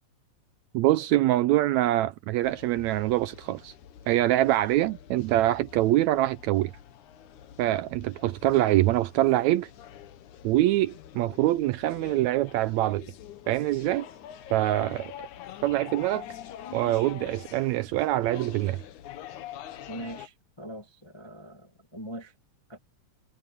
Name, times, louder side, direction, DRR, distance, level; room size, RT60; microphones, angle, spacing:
voice 1, 0.7-3.7 4.1-6.7 7.6-9.7 10.4-13.1 13.5-14.1 14.5-15.3 15.6-16.3 16.7-18.8, right 15 dB, 80° right, 1.7 m, -24 dB
sound 1, 2.4-20.3, left 10 dB, 75° left, 2.6 m, -46 dB
voice 2, 19.9-22.3 22.7-22.8, right 1 dB, 20° left, 0.7 m, -41 dB
omnidirectional pair, 3.6 m